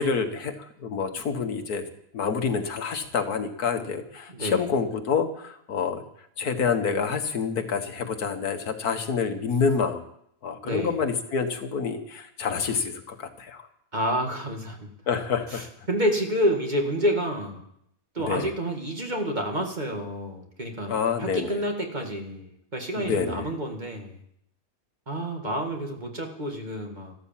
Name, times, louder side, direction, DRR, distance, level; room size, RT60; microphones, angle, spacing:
voice 1, 0.0-1.8 2.1-6.0 6.4-10.0 10.4-13.7 15.1-15.7 18.3-18.5 20.9-21.6 23.0-23.5, left 5 dB, 80° left, 7 dB, 1.9 m, -27 dB
voice 2, 4.3-4.7 10.6-11.0 13.9-14.8 15.5-17.6 18.1-20.9 21.2-24.2 25.1-27.2, equal, 30° right, 2 dB, 2.3 m, -29 dB
14.0 x 13.0 x 7.5 m, 0.72 s
omnidirectional pair, 1.6 m